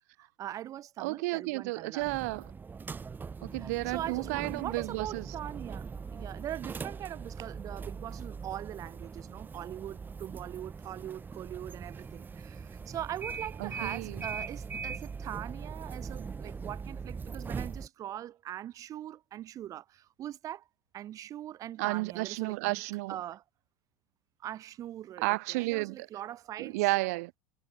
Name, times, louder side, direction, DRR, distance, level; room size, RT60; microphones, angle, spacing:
voice 1, 0.2-2.1 3.6-20.6 20.9-22.8 23.1-23.4 24.4-26.8, right 12 dB, 40° right, 1.1 m, -41 dB
voice 2, 1.0-2.5 3.4-5.3 13.6-14.2 21.8-23.2 25.2-26.1 26.6-27.4, right 23 dB, 65° right, 0.8 m, -32 dB
sound 1, 2.0-17.9, right 5 dB, 20° right, 2.8 m, -41 dB
hypercardioid pair, 90°, 9 cm